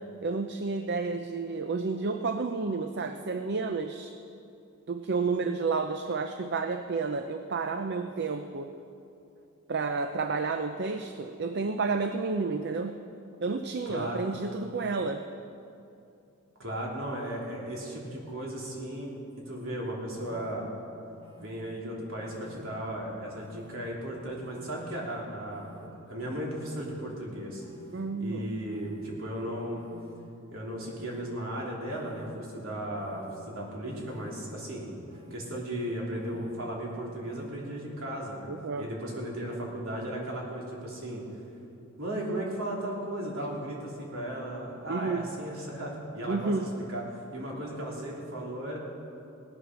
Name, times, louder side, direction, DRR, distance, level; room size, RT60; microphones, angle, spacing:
voice 1, 0.2-4.1 4.9-8.7 9.7-13.0 13.4-15.3 27.9-28.5 38.5-38.9 44.9-45.3 46.3-46.7, right 4 dB, 50° right, 7 dB, 0.5 m, -31 dB
voice 2, 13.8-14.2 16.6-20.7 21.4-27.6 28.2-29.8 30.5-35.0 35.3-38.5 38.8-41.2 42.0-47.0 47.3-48.8, right 1 dB, 70° right, -3 dB, 3.4 m, -36 dB
sound 1, 20.1-20.5 21.2-21.6 22.3-22.7 23.3-23.7 24.4-24.8 25.5-25.9 26.5-26.9 27.6-28.0 28.7-29.1 29.7-30.1 30.8-31.2 31.9-32.3 32.9-33.3 34.0-34.4 35.1-35.5 36.1-36.5 37.2-37.5, left 3 dB, 25° right, 1.5 m, -54 dB
18.0 x 10.5 x 6.2 m, 2.7 s
head